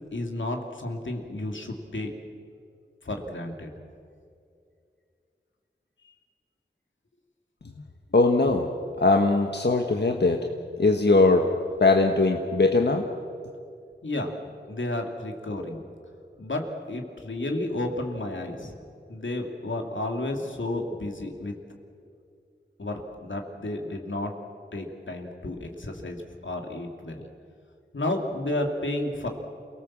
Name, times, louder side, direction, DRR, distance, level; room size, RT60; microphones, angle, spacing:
voice 1, 0.1-2.1 3.1-3.7 14.0-14.3 14.7-15.8 16.4-18.7 19.1-21.5 22.8-24.3 24.7-26.2 26.4-27.3 27.9-29.3, left 1 dB, 85° left, 2 dB, 2.8 m, -31 dB
voice 2, 8.1-8.7 9.0-10.5 10.8-11.5 11.8-13.1, left 3 dB, 65° left, 3 dB, 1.5 m, -20 dB
28.5 x 18.5 x 7.5 m, 2.4 s
wide cardioid pair, 45°, 19 cm